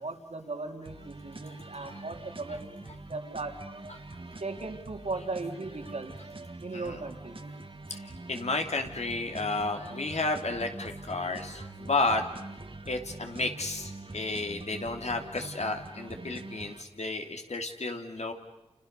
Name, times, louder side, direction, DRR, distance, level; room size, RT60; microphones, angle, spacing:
voice 1, 0.0-2.8 3.1-3.6 4.4-6.2 6.6-7.4, right 3 dB, 80° right, 4 dB, 3.2 m, -37 dB
sound 1, 0.8-16.8, right 2 dB, 55° right, 1.8 m, -44 dB
voice 2, 7.9-12.2 12.9-18.3, left 3 dB, 80° left, 5 dB, 3.0 m, -32 dB
30.0 x 29.0 x 6.9 m, 0.97 s
wide cardioid pair, 40°, 11 cm